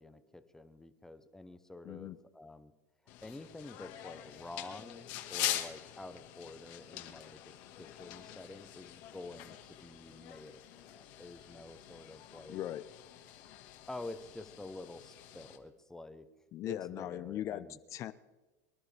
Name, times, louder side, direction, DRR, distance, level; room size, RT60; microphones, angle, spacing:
voice 1, 0.0-2.7 3.2-7.4 7.8-12.6 13.9-16.3 16.6-17.8, left 2 dB, 5° left, 11 dB, 0.8 m, -48 dB
voice 2, 1.8-2.2 12.5-12.8 16.5-18.1, left 12 dB, 35° left, 14 dB, 0.5 m, -39 dB
sound 1, 3.1-15.6, left 13 dB, 50° left, 1.7 m, -44 dB
24.5 x 11.5 x 3.4 m, 1.2 s
supercardioid pair, 145°, 9 cm